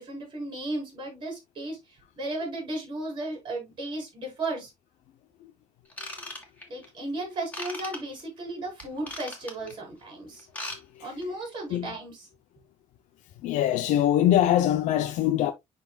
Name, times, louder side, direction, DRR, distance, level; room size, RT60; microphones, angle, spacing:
voice 1, 0.0-4.7 6.7-10.5 11.0-12.3, right 2 dB, 40° right, 4.8 m, -35 dB
Ratchet pawl / Tools, 5.9-6.9 7.5-8.0 8.8-9.7 10.4-10.8 11.0-11.2 11.8-11.9, left 2 dB, 10° left, 2.1 m, -37 dB
voice 2, 10.7-11.1 11.7-12.0 13.4-15.5, left 12 dB, 75° left, 0.7 m, -23 dB
11.0 x 4.0 x 2.3 m
cardioid pair, 145°, 13 cm